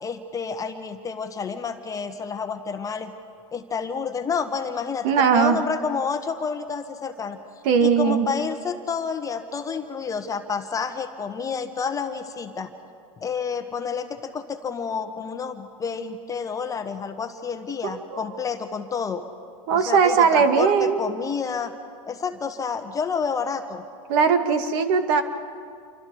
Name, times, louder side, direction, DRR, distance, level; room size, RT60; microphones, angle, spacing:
voice 1, 0.0-3.1 3.5-7.4 7.8-12.7 13.2-19.2 19.7-21.7 22.1-23.8, left 5 dB, 20° left, 7 dB, 1.4 m, -29 dB
voice 2, 5.0-5.6 7.6-8.3 17.8-18.2 19.7-21.0 24.1-25.2, right 6 dB, 55° right, 7 dB, 2.1 m, -19 dB
28.0 x 24.5 x 4.8 m, 2.2 s
hypercardioid pair, 120°, 18 cm